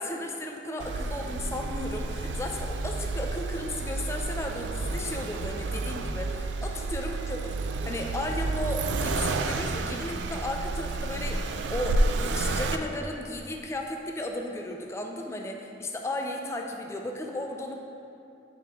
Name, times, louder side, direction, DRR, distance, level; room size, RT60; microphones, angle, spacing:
voice 1, 0.0-17.8, left 1 dB, 15° left, 2 dB, 0.4 m, -35 dB
Accelerating revving vroom, 0.8-12.8, right 3 dB, 70° right, 0.3 m, -30 dB
7.8 x 4.3 x 3.6 m, 2.7 s
head